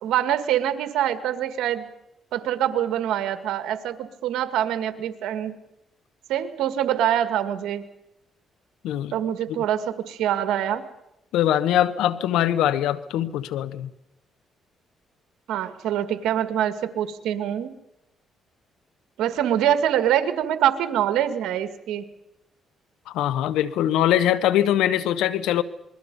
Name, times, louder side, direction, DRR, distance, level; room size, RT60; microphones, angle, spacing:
voice 1, 0.0-1.9 2.3-5.6 6.3-7.8 9.1-10.8 15.5-17.7 19.2-22.0, right 10 dB, 85° right, 9 dB, 1.7 m, -24 dB
voice 2, 11.3-13.9 23.1-25.6, left 11 dB, 90° left, 15 dB, 1.0 m, -22 dB
27.5 x 22.0 x 5.3 m, 0.87 s
cardioid pair, 90°, 0 cm